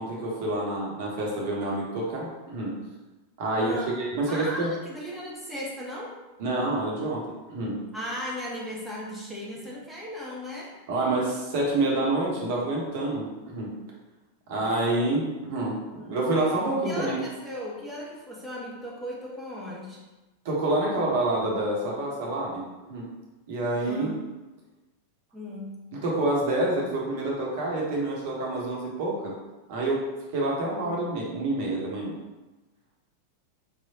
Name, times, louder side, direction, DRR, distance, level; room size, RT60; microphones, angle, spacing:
voice 1, 0.0-2.7 3.4-4.7 6.4-7.8 10.9-13.7 14.5-15.8 16.1-17.2 20.4-23.1 23.5-24.1 25.9-29.3 29.7-30.1 30.3-32.2, right 2 dB, 50° right, -3 dB, 1.2 m, -27 dB
voice 2, 3.6-6.2 7.9-10.8 14.5-14.9 15.9-16.2 16.8-20.0 23.9-24.3 25.3-25.7, equal, 5° right, -5 dB, 0.9 m, -37 dB
5.3 x 3.2 x 2.8 m, 1.1 s
figure-of-eight pair, 90°, 0 cm